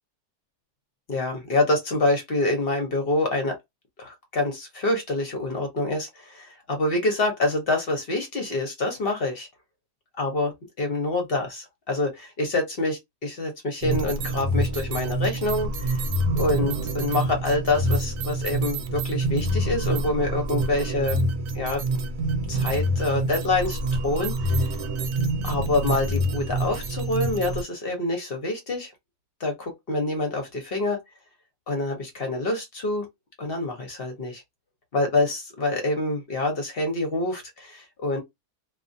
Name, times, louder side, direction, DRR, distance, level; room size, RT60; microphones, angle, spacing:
voice 1, 1.1-3.6 4.0-9.5 10.2-16.0 16.4-21.2 21.5-21.8 22.5-23.8 24.0-24.7 25.4-28.9 29.4-31.0 31.7-33.1 33.4-34.4 34.9-38.2, left 2 dB, 50° left, 0.7 m, -26 dB
sound 1, 13.8-27.6, right 1 dB, 85° right, 1.1 m, -26 dB
2.4 x 2.4 x 2.6 m
omnidirectional pair, 1.7 m